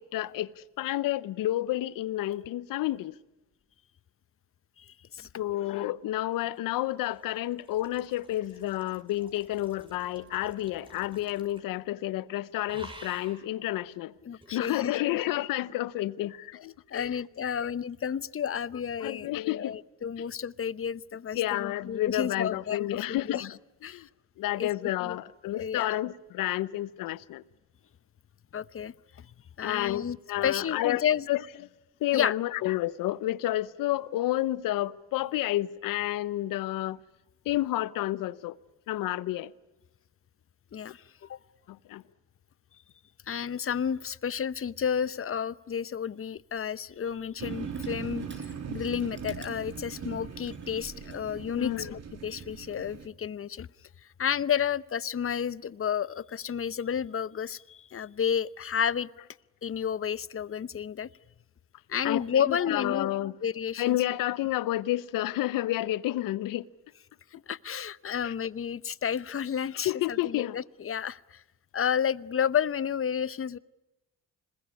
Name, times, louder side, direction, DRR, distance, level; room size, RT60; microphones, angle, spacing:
voice 1, 0.0-3.1 5.4-14.1 14.5-17.2 17.4-17.7 19.0-19.8 21.4-24.1 24.4-27.4 29.6-31.4 32.0-37.0 37.5-38.6 38.9-39.5 41.7-42.0 51.5-51.9 62.0-63.3 63.8-66.6 68.2-68.3 69.8-70.6, left 15 dB, 80° left, 0.9 m, -30 dB
voice 2, 4.8-5.3 14.2-14.9 16.2-16.3 16.9-23.5 23.8-24.0 24.6-24.7 25.0-25.2 25.5-25.9 28.5-29.3 29.6-30.2 30.4-31.3 32.1-32.3 40.7-41.4 43.3-53.7 54.2-59.1 59.6-61.1 61.9-63.1 63.4-64.0 67.5-71.4 71.7-73.6, left 8 dB, 40° left, 0.9 m, -31 dB
sound 1, 6.0-11.8 12.0-12.3 12.7-13.5 14.4-14.5, right 1 dB, 15° right, 5.4 m, -51 dB
Crushing, 46.4-51.2, right 3 dB, 35° right, 6.2 m, -56 dB
sound 2, 47.4-53.1, right 7 dB, 50° right, 2.2 m, -40 dB
26.5 x 21.0 x 9.8 m
supercardioid pair, 60°, 33 cm